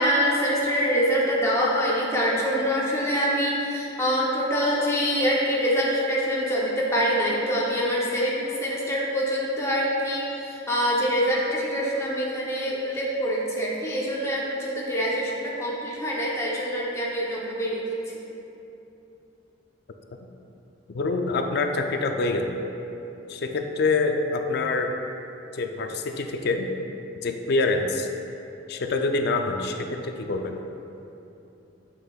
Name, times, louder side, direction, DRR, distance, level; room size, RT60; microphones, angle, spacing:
voice 1, 0.0-17.8, equal, 15° left, -5 dB, 0.7 m, -25 dB
voice 2, 20.9-22.5 23.3-25.0 25.5-26.7 27.2-28.1 28.7-30.6, left 3 dB, 60° left, 5 dB, 0.4 m, -26 dB
7.5 x 6.3 x 2.3 m, 2.9 s
head